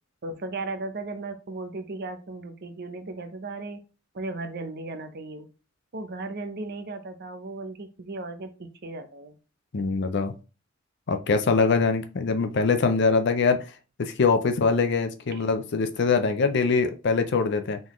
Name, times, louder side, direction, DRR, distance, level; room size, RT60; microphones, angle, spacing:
voice 1, 0.2-3.8 4.1-5.5 5.9-9.4 15.3-15.5, right 2 dB, 50° right, 8 dB, 0.7 m, -36 dB
voice 2, 9.7-10.3 11.1-13.6 14.0-17.8, left 4 dB, 60° left, 8 dB, 0.5 m, -23 dB
3.9 x 3.8 x 3.1 m, 0.33 s
head